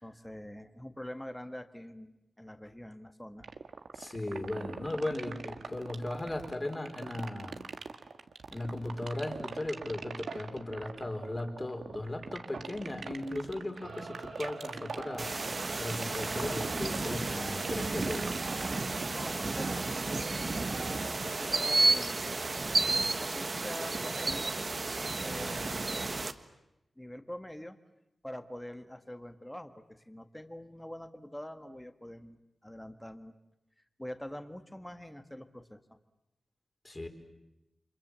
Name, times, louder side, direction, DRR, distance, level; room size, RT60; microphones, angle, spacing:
voice 1, 0.0-3.5 19.1-22.2 22.7-22.9 23.2-24.6 25.2-26.3 27.0-27.8 28.2-33.3 34.0-36.0, left 1 dB, 10° left, 8 dB, 1.6 m, -45 dB
sound 1, 3.4-19.4, right 5 dB, 85° right, 1.6 m, -42 dB
voice 2, 3.9-7.6 8.5-15.3 15.8-18.4 36.8-37.1, left 1 dB, 25° left, 4 dB, 4.1 m, -37 dB
Singing / Musical instrument, 13.7-22.6, right 3 dB, 65° right, 3.7 m, -47 dB
sound 2, 15.2-26.3, right 3 dB, 40° right, 1.4 m, -32 dB
30.0 x 26.0 x 7.5 m, 0.90 s
wide cardioid pair, 90°, 0 cm